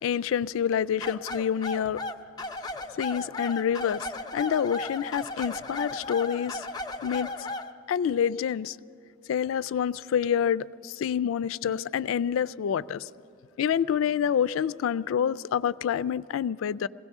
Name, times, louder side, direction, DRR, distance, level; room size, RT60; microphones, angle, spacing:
voice 1, 0.0-2.0 3.0-4.1 4.3-6.7 7.0-7.3 7.9-8.8 9.3-13.1 13.6-16.9, left 8 dB, 80° left, 0.3 m, -27 dB
sound 1, 1.0-7.7, left 2 dB, 20° left, 0.4 m, -35 dB
22.0 x 17.0 x 3.6 m
head